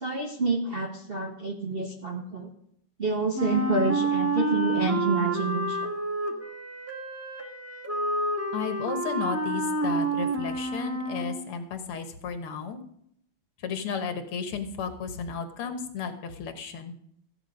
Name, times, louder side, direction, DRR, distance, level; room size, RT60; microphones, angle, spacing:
voice 1, 0.0-2.5 3.0-5.9, right 3 dB, 40° right, 2 dB, 0.9 m, -28 dB
Wind instrument woodwind instrument, 3.3-11.4, right 2 dB, 15° right, 0.6 m, -29 dB
voice 2, 8.5-12.8 13.6-16.9, left 6 dB, 85° left, 7 dB, 2.1 m, -33 dB
14.0 x 9.4 x 5.2 m, 0.71 s
omnidirectional pair, 2.4 m